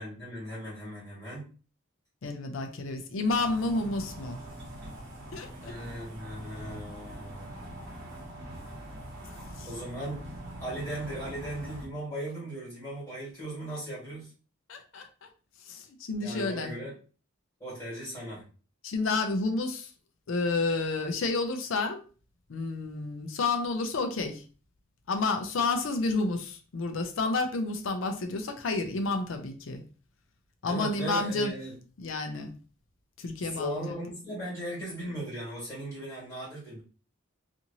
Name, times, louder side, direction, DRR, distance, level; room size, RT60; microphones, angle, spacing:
voice 1, 0.0-1.4 5.6-8.5 9.6-10.2 10.6-14.3 16.2-16.9 17.6-18.4 30.6-31.7 33.4-36.8, right 1 dB, 15° left, -7 dB, 1.6 m, -38 dB
voice 2, 2.2-4.4 5.3-5.7 9.6-9.7 14.7-15.1 15.7-16.7 18.8-19.9 20.3-22.0 22.5-24.4 25.1-29.8 30.6-31.5 32.0-32.5 33.2-33.9, left 3 dB, 70° left, 6 dB, 0.4 m, -30 dB
sound 1, 3.3-11.9, right 1 dB, 55° right, 0.9 m, -43 dB
2.9 x 2.5 x 2.6 m, 0.37 s
head